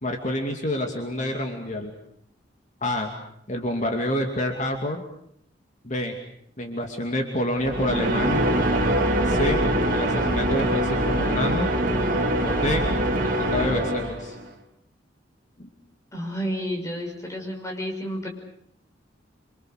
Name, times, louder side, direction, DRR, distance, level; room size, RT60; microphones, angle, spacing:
voice 1, 0.0-1.9 2.8-3.1 3.5-5.0 5.8-6.1 6.6-8.5 9.2-9.6 9.9-11.7 12.4-12.9 13.2-14.4 15.6-15.7, left 1 dB, 40° left, 3 dB, 2.6 m, -28 dB
sound 1, 7.6-14.5, right 1 dB, 50° right, 2.7 m, -23 dB
voice 2, 16.1-18.3, equal, 15° left, 2 dB, 5.7 m, -31 dB
27.5 x 25.0 x 6.6 m, 0.71 s
head